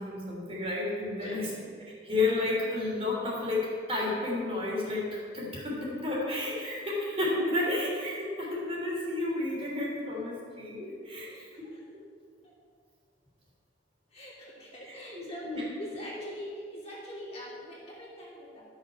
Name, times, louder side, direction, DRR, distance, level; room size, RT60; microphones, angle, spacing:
voice 1, 0.0-1.5 2.0-11.3 11.6-11.7 14.8-15.7, left 2 dB, 35° right, -4 dB, 3.2 m, -31 dB
voice 2, 1.2-1.6 11.3-11.8 12.4-12.5 14.1-18.6, equal, 35° left, -6 dB, 2.8 m, -43 dB
12.5 x 6.5 x 6.4 m, 2.1 s
head